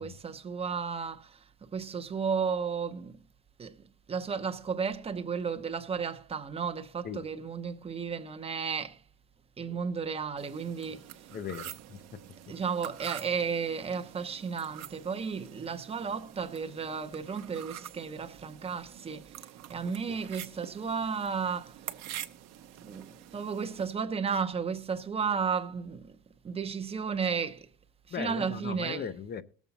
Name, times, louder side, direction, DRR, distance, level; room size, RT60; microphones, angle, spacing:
voice 1, 0.0-3.2 3.6-3.8 4.1-9.0 9.6-11.3 12.5-21.8 22.8-26.2 26.4-27.7 28.1-29.1, right 6 dB, 15° right, 0.7 m, -33 dB
sound 1, 10.4-23.9, right 12 dB, 45° right, 0.9 m, -46 dB
voice 2, 11.3-12.2 19.8-20.0 28.1-29.4, left 7 dB, 25° left, 0.6 m, -38 dB
19.0 x 7.2 x 4.0 m
cardioid pair, 160°, 39 cm